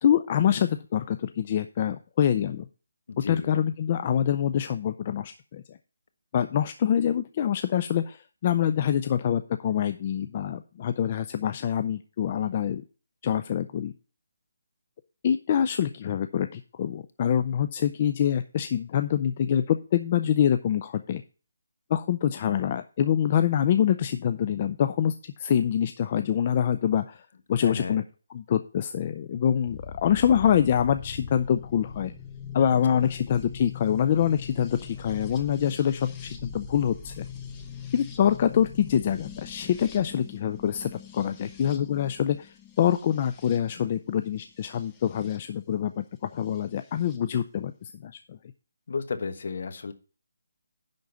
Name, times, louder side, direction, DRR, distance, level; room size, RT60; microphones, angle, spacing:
voice 1, 0.0-2.7 3.2-5.8 6.3-12.8 13.2-13.9 15.2-21.2 21.9-28.0 28.3-32.1 32.5-37.3 37.9-48.4, left 9 dB, 30° left, 10 dB, 0.4 m, -25 dB
voice 2, 3.1-3.5 27.6-28.0 32.9-33.1 48.9-49.9, left 5 dB, 55° left, 10 dB, 1.2 m, -33 dB
sound 1, 29.6-45.4 46.5-47.2, left 6 dB, 15° left, 0.9 m, -42 dB
10.5 x 3.9 x 6.8 m, 0.36 s
hypercardioid pair, 165°, 0 cm